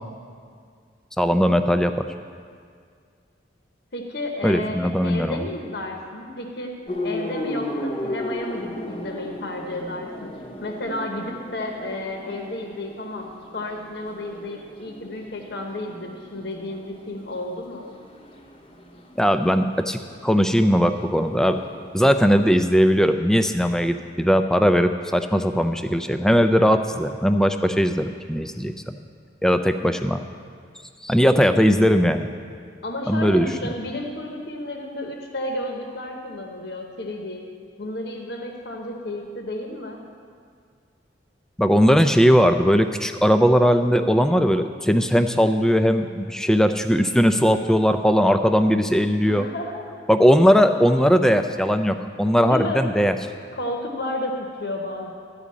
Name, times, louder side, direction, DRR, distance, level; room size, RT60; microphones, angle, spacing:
voice 1, 1.2-1.9 4.4-5.4 19.2-21.6 21.9-29.0 29.4-30.2 31.0-32.3 33.1-33.7 41.6-49.5 50.1-53.1, equal, 5° left, 8 dB, 0.3 m, -19 dB
voice 2, 3.9-6.7 7.0-10.3 10.6-13.3 13.5-17.9 32.8-37.4 37.8-40.0 49.3-49.8 52.4-52.8 53.5-55.1, left 1 dB, 65° left, 2 dB, 0.9 m, -32 dB
sound 1, 6.9-22.8, left 1 dB, 30° left, 0.8 m, -36 dB
12.5 x 5.0 x 8.4 m, 2.1 s
head